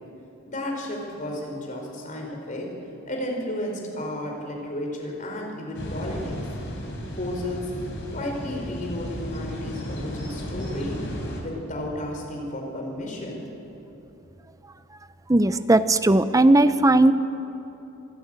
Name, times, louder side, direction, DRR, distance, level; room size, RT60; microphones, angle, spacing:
voice 1, 0.5-2.7 3.1-6.3 7.2-7.7 8.1-11.0 11.4-13.5, left 1 dB, 40° left, 0 dB, 4.3 m, -32 dB
sound 1, 5.7-11.4, equal, 65° left, 4.1 m, -34 dB
voice 2, 15.3-17.1, right 2 dB, 15° right, 13 dB, 0.6 m, -17 dB
25.5 x 11.5 x 8.8 m, 3.0 s
head